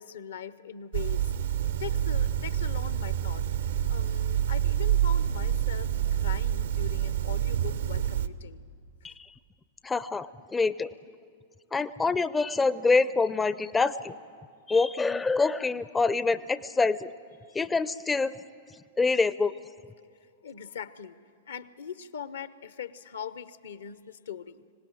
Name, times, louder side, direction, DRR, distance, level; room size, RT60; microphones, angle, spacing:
voice 1, 0.0-8.6 17.5-17.6 20.4-21.2 21.5-24.6, left 8 dB, 65° left, 15 dB, 0.8 m, -41 dB
sound 1, 0.9-8.3, right 10 dB, 65° right, 0.7 m, -27 dB
voice 2, 9.8-10.9 11.7-14.2 14.7-17.1 17.5-18.3 19.0-19.5, left 4 dB, 10° left, 15 dB, 0.5 m, -26 dB
25.5 x 18.0 x 9.1 m, 2.1 s
figure-of-eight pair, 100°, 0 cm